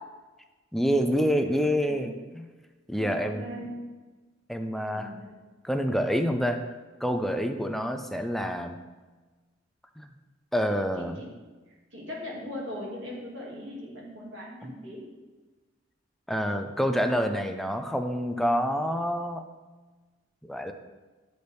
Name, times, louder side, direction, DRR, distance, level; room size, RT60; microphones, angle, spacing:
voice 1, 0.7-2.5 2.9-3.4 4.5-5.1 5.6-6.6 7.0-8.8 10.0-10.1 10.5-11.2 14.6-14.7 16.3-19.4 20.4-20.7, equal, ahead, 6 dB, 0.4 m, -27 dB
voice 2, 3.0-3.7 4.9-5.3 11.0-11.3 11.9-15.0, left 1 dB, 90° right, -4 dB, 2.2 m, -39 dB
9.8 x 4.0 x 3.4 m, 1.3 s
head